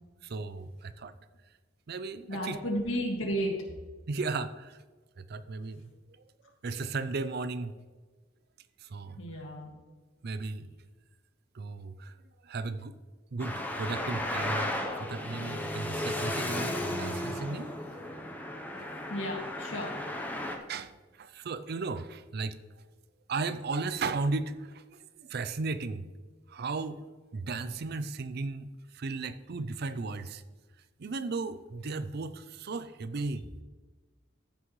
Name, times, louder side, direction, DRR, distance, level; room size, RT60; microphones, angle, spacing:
voice 1, 0.2-1.1 1.9-2.6 4.1-4.8 5.2-5.9 6.6-7.7 8.8-9.2 10.2-10.7 11.5-12.1 12.4-13.0 13.3-17.7 20.5-22.6 23.3-24.8 25.2-26.1 26.5-27.0 27.3-30.4 31.0-33.6, right 3 dB, 55° right, 13 dB, 0.5 m, -35 dB
voice 2, 2.3-3.6 9.2-9.7 19.1-19.9, equal, 85° left, 0 dB, 2.1 m, -33 dB
Traffic noise roadway noise, 13.4-20.6, left 1 dB, 10° left, 0.9 m, -34 dB
14.5 x 6.2 x 3.2 m, 1.3 s
head